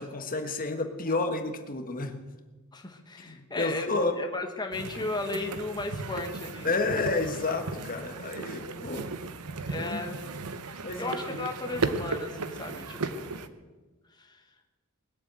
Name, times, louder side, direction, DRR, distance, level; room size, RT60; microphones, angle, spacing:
voice 1, 0.0-2.1 3.2-4.2 6.6-9.1 9.8-10.0 10.8-11.1, left 3 dB, 40° left, 5 dB, 1.5 m, -30 dB
voice 2, 2.7-6.7 9.7-10.3 10.6-13.4 14.2-14.4, left 2 dB, 20° left, 3 dB, 1.3 m, -35 dB
sound 1, 4.7-13.5, right 4 dB, 90° right, 0.9 m, -36 dB
20.5 x 7.6 x 7.7 m, 1.3 s
head